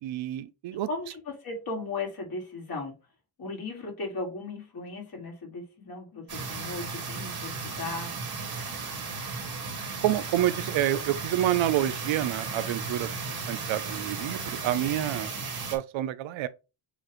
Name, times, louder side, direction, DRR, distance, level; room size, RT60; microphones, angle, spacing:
voice 1, 0.0-0.9 10.0-15.3 15.7-16.5, right 13 dB, 90° right, 0.6 m, -28 dB
voice 2, 0.9-2.9 3.4-8.1, left 3 dB, 50° left, 2.1 m, -36 dB
sound 1, 6.3-15.8, right 4 dB, 55° right, 1.8 m, -35 dB
7.0 x 2.5 x 3.0 m
cardioid pair, 115°, 45 cm